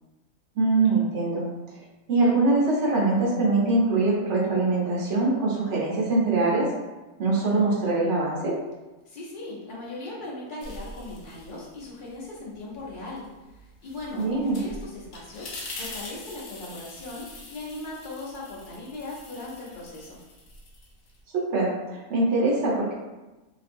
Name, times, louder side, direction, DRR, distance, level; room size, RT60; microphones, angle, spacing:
voice 1, 0.5-1.5 2.1-6.7 7.2-8.6 14.2-14.6 21.3-22.9, right 2 dB, 65° right, -4 dB, 1.0 m, -23 dB
voice 2, 9.1-13.3 13.6-20.2, left 2 dB, 50° left, -5 dB, 0.6 m, -39 dB
sound 1, 10.6-12.2 12.5-21.2, left 2 dB, 80° left, 1.0 m, -43 dB
2.5 x 2.2 x 2.5 m, 1.1 s
omnidirectional pair, 1.4 m